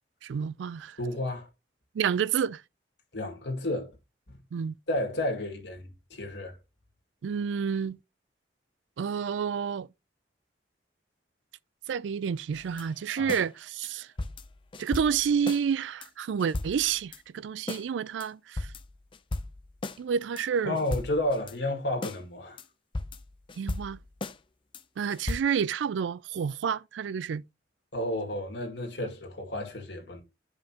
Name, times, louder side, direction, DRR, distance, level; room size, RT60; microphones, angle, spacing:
voice 1, 0.2-1.0 1.9-2.6 4.5-4.7 7.2-8.0 9.0-9.9 11.9-14.1 14.8-18.7 20.0-20.8 23.6-24.0 25.0-27.4, right 7 dB, 85° right, 0.3 m, -29 dB
voice 2, 1.0-1.5 3.1-3.9 4.3-4.4 4.9-6.6 13.2-13.3 20.6-22.6 27.9-30.2, left 1 dB, 75° left, 2.0 m, -32 dB
sound 1, 12.5-13.5 13.8-13.9 14.2-15.6 16.0-16.1 16.4-17.2 17.7-17.8 18.2-18.3 18.6-20.0 20.4-20.5 20.8-21.5 22.0-22.2 22.6-22.7 22.9-24.4 24.7-24.8 25.1-25.4, left 2 dB, 30° left, 0.5 m, -36 dB
9.3 x 5.2 x 2.8 m
head